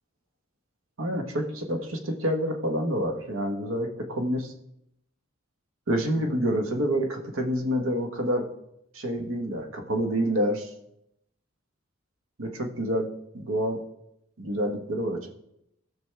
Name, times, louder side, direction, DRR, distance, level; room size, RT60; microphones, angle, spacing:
voice 1, 1.0-4.5 5.9-8.5 8.9-10.7 12.4-13.1 13.3-13.8 14.4-15.3, equal, 75° right, 4 dB, 1.3 m, -28 dB
16.0 x 6.1 x 3.4 m, 0.80 s
head